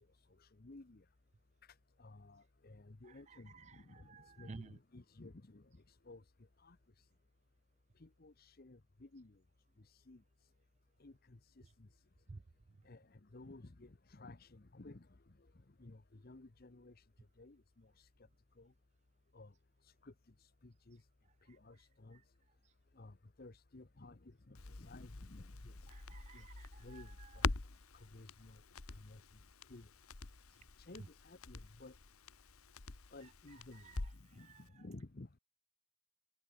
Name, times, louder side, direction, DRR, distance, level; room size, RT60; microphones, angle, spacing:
voice 1, 0.4-1.0 1.6-6.2 6.6-7.0 8.0-9.4 9.8-10.2 11.0-11.9 12.8-15.2 15.8-17.0 17.4-18.1 18.6-18.7 19.3-19.5 19.8-20.1 20.4-21.0 21.5-22.2 22.9-25.9 26.3-26.5 26.8-27.5 27.9-28.6 28.9-29.2 29.7-29.9 30.8-31.9 33.1-35.4, left 2 dB, 45° left, 0.9 m, -56 dB
voice 2, 3.3-4.8 12.3-12.4 25.9-27.3 34.4-34.6, right 3 dB, 30° right, 0.4 m, -54 dB
Crackle, 24.6-34.4 34.7-34.8, left 3 dB, 90° left, 1.5 m, -45 dB
head